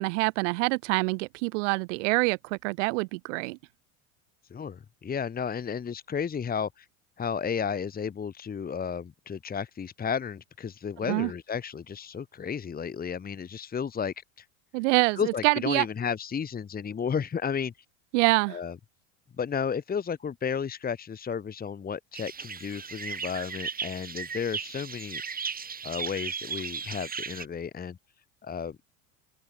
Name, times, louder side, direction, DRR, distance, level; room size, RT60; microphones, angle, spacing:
voice 1, 0.0-3.6 11.1-11.3 14.7-15.8 18.1-18.6, right 27 dB, 65° right, 4.5 m, -26 dB
voice 2, 4.5-6.9 7.2-14.5 15.2-17.7 18.5-18.8 19.4-28.0 28.4-28.8, left 7 dB, 25° left, 1.8 m, -33 dB
sound 1, 22.1-27.5, right 6 dB, 20° right, 3.5 m, -36 dB
open air
hypercardioid pair, 85°, 39 cm